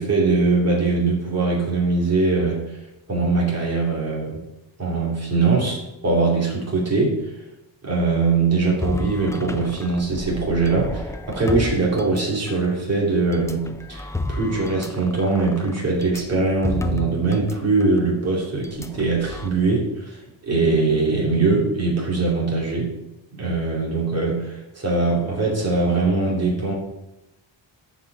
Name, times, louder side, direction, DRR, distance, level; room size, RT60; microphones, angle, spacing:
voice 1, 0.0-2.6 3.1-4.4 4.8-7.2 7.8-22.9 23.3-26.7, right 3 dB, 35° right, -3 dB, 2.8 m, -22 dB
sound 1, 8.8-12.7 13.3-17.6 17.8-18.0 18.6-19.5, left 2 dB, 5° left, 0.3 m, -31 dB
13.0 x 5.0 x 4.1 m, 0.91 s
wide cardioid pair, 155°, 45 cm